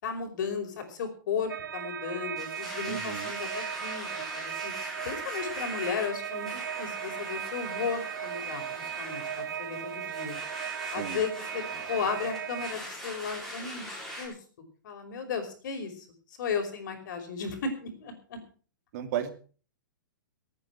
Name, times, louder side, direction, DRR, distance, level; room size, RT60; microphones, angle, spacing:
voice 1, 0.0-4.7 5.1-8.6 9.0-10.4 10.9-13.9 14.2-14.3 14.8-16.1 16.4-18.4, left 6 dB, 65° left, 5 dB, 5.2 m, -35 dB
sound 1, 1.5-12.7, right 10 dB, 85° right, 1.1 m, -37 dB
Domestic sounds home sounds, 2.4-14.3, equal, 5° left, 6.8 m, -42 dB
voice 2, 2.9-3.3 11.0-11.2 18.9-19.4, right 10 dB, 50° right, 7 dB, 2.7 m, -34 dB
23.5 x 9.3 x 4.6 m, 0.40 s
hypercardioid pair, 135°, 11 cm